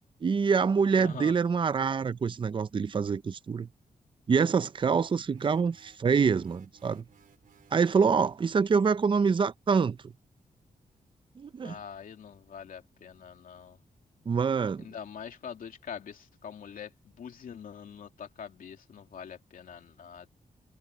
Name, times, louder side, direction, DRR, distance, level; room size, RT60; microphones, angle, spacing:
voice 1, 0.2-3.7 4.3-7.0 7.7-10.0 11.4-11.7 14.3-14.8, right 5 dB, 35° right, 0.5 m, -26 dB
voice 2, 1.0-1.3 11.6-13.8 14.8-20.3, left 7 dB, 75° left, 2.9 m, -44 dB
sound 1, 5.3-8.2, right 8 dB, 80° right, 4.0 m, -61 dB
wide cardioid pair, 125°, 14 cm